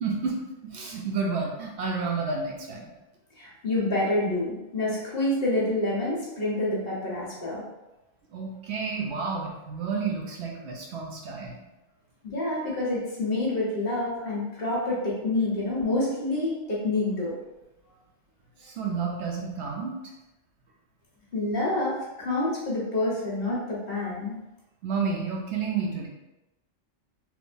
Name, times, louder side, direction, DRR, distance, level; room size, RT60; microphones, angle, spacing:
voice 1, 0.0-2.9 8.3-11.5 18.6-19.9 24.8-26.1, right 5 dB, 65° right, 0 dB, 0.9 m, -30 dB
voice 2, 3.4-7.6 12.2-17.3 21.3-24.4, left 2 dB, 55° left, -5 dB, 1.2 m, -27 dB
3.5 x 3.0 x 2.5 m, 1.0 s
omnidirectional pair, 1.3 m